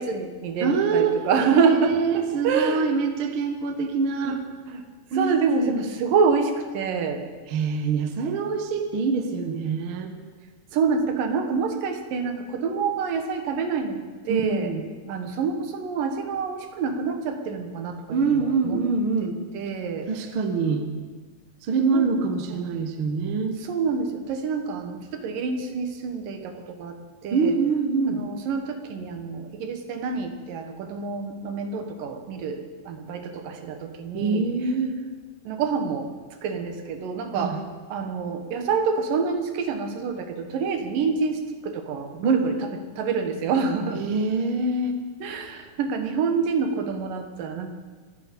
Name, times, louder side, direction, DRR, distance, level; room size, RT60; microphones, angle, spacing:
voice 1, 0.0-2.9 4.2-4.4 4.7-4.8 5.1-7.2 10.7-14.7 15.1-18.8 19.5-20.1 21.9-22.0 22.5-22.8 23.6-27.0 27.2-27.5 28.1-34.4 35.4-36.1 36.4-37.6 37.9-42.6 43.0-44.0 45.2-47.7, right 5 dB, 75° right, 6 dB, 2.9 m, -27 dB
voice 2, 0.6-1.2 1.5-4.4 5.1-5.9 7.5-10.1 14.3-14.9 18.1-19.4 20.1-20.9 21.7-23.6 27.3-28.2 34.1-34.9 37.3-37.6 42.2-42.4 43.9-45.0, right 4 dB, 55° right, 6 dB, 1.5 m, -25 dB
26.5 x 9.7 x 5.3 m, 1.4 s
omnidirectional pair, 4.0 m